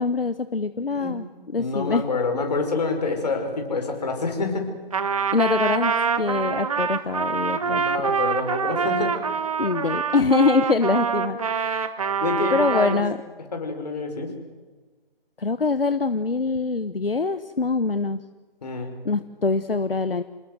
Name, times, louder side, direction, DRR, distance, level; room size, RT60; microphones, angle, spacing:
voice 1, 0.0-2.0 5.3-7.8 9.6-11.9 12.5-13.2 15.4-18.2 19.0-20.2, left 4 dB, 70° left, 12 dB, 1.2 m, -24 dB
voice 2, 1.6-4.7 7.6-9.1 12.2-13.0 13.5-14.3 18.6-18.9, left 4 dB, 45° left, 4 dB, 5.4 m, -27 dB
Trumpet, 4.9-13.0, right 6 dB, 35° right, 1.4 m, -25 dB
27.5 x 19.5 x 7.9 m, 1.3 s
figure-of-eight pair, 150°, 29 cm